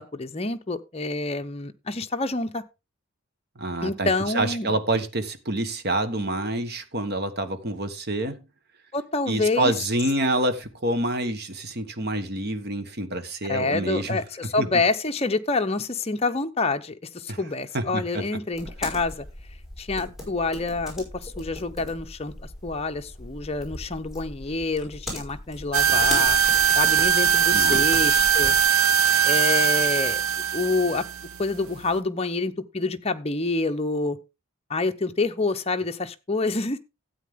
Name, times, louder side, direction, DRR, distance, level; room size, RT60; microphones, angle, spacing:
voice 1, 0.0-2.6 3.8-4.7 8.9-9.7 13.5-19.2 19.8-22.3 22.6-26.4 26.7-28.6 29.2-30.2 30.5-31.1 31.4-34.2 34.7-36.8, left 3 dB, 25° left, 0.8 m, -27 dB
voice 2, 3.6-8.4 9.3-14.7 17.3-17.4 17.7-18.2 27.5-27.8, right 1 dB, 45° right, 1.3 m, -27 dB
sound 1, 18.5-28.6, left 1 dB, ahead, 5.2 m, -38 dB
sound 2, 25.7-32.0, right 7 dB, 70° right, 0.5 m, -21 dB
13.0 x 8.5 x 3.7 m
head